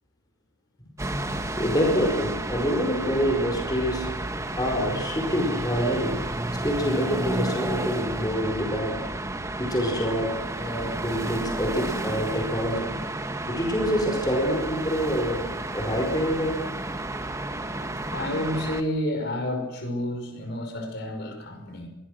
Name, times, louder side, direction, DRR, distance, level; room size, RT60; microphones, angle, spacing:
sound 1, 1.0-18.8, right 1 dB, 15° right, 1.3 m, -31 dB
voice 1, 1.6-4.1 4.6-6.3 6.6-9.0 9.6-12.9 13.5-16.6, equal, 20° left, 1 dB, 4.7 m, -26 dB
voice 2, 18.0-21.9, left 1 dB, 50° left, 5 dB, 5.5 m, -30 dB
26.5 x 21.5 x 6.5 m, 0.95 s
head